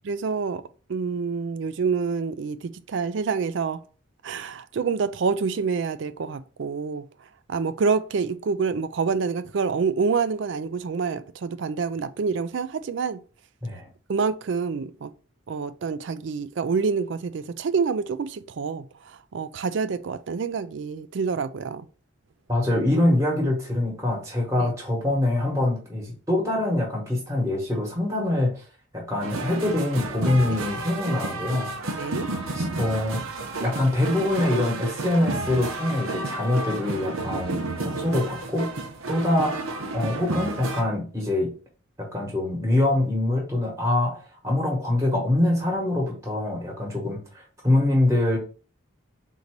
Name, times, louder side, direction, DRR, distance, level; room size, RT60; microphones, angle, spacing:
voice 1, 0.0-0.6 0.9-3.8 4.2-7.1 7.5-13.2 14.1-15.1 15.5-21.9 24.6-24.7 32.0-32.3, right 5 dB, 60° right, 0.4 m, -27 dB
voice 2, 22.5-28.6 28.9-31.7 32.5-33.2 33.6-38.7 39.1-39.5 39.9-41.5 42.0-44.2 44.4-48.4, left 1 dB, 15° right, 1.1 m, -24 dB
sound 1, 29.2-40.8, right 2 dB, 90° right, 0.8 m, -31 dB
3.9 x 2.8 x 4.5 m
head